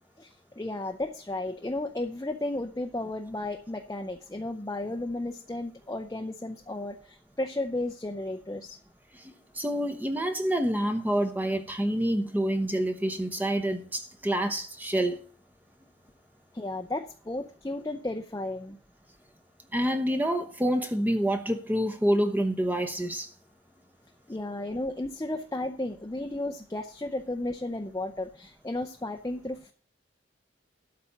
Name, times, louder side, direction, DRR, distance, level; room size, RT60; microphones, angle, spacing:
voice 1, 0.2-8.8 16.5-18.8 24.3-29.7, left 2 dB, 20° left, 0.6 m, -34 dB
voice 2, 9.6-15.2 19.7-23.3, right 1 dB, 10° right, 0.9 m, -27 dB
12.5 x 4.3 x 8.4 m
head